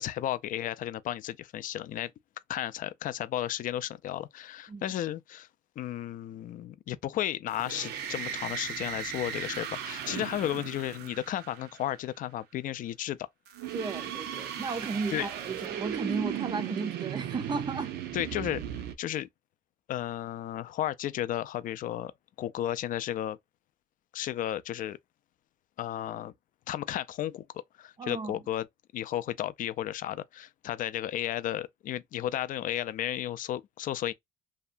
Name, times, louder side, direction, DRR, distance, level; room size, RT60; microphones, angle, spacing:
voice 1, 0.0-2.1 2.5-5.5 5.8-13.2 15.1-15.3 18.1-18.6 19.0-19.3 19.9-22.1 22.4-23.4 24.1-25.0 25.8-26.3 26.7-27.4 27.8-28.7 28.9-34.1, left 12 dB, 55° left, 0.4 m, -33 dB
sound 1, 7.5-12.0 13.5-18.9, right 9 dB, 75° right, 0.6 m, -37 dB
voice 2, 13.7-18.0 28.0-28.3, right 4 dB, 25° right, 0.5 m, -34 dB
2.8 x 2.2 x 2.4 m
cardioid pair, 110°, 17 cm